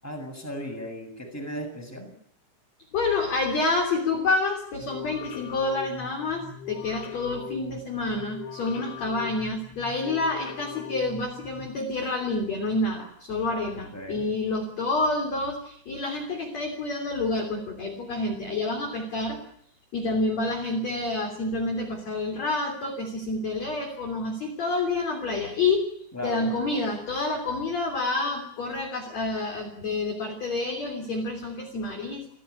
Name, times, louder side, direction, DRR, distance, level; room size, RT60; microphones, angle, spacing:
voice 1, 0.0-2.1 13.9-14.3 26.1-26.5, equal, 5° left, 1 dB, 7.3 m, -36 dB
voice 2, 2.9-19.4 19.9-25.9 26.2-32.2, left 3 dB, 35° left, 2 dB, 4.0 m, -28 dB
sound 1, 4.8-11.7, left 7 dB, 70° left, 5.4 m, -40 dB
29.0 x 16.5 x 9.9 m, 0.67 s
omnidirectional pair, 5.8 m